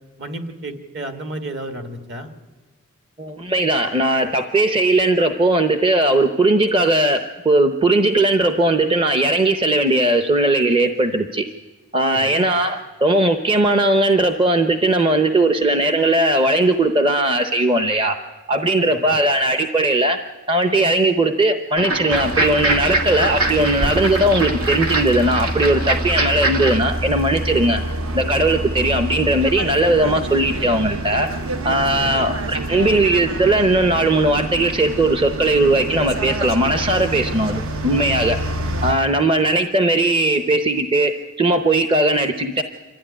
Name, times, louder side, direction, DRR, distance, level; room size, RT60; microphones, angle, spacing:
voice 1, 0.2-2.3 12.1-12.5 18.8-19.2 32.0-32.3, right 2 dB, 50° right, 6 dB, 2.1 m, -32 dB
voice 2, 3.2-11.5 11.9-18.2 18.5-20.2 20.5-27.8 28.1-31.3 31.6-38.4 38.8-41.1 41.4-42.6, right 2 dB, 25° right, 7 dB, 0.7 m, -18 dB
sound 1, 21.8-26.8, right 2 dB, 85° right, 1.9 m, -24 dB
sound 2, 22.1-38.9, right 1 dB, 70° right, 1.1 m, -27 dB
26.0 x 13.0 x 10.0 m, 1.3 s
head